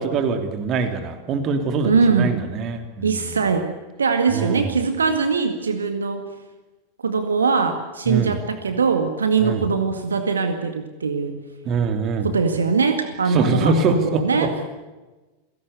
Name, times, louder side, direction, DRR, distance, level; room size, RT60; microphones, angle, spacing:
voice 1, 0.0-3.4 4.3-4.7 8.1-8.3 9.4-9.6 11.6-12.3 13.3-14.5, right 4 dB, 35° right, 7 dB, 3.1 m, -23 dB
voice 2, 1.8-2.3 3.0-3.7 4.0-6.2 7.0-11.4 12.2-14.5, right 5 dB, 70° right, 7 dB, 1.9 m, -21 dB
29.5 x 17.0 x 8.4 m, 1.2 s
figure-of-eight pair, 90°, 0 cm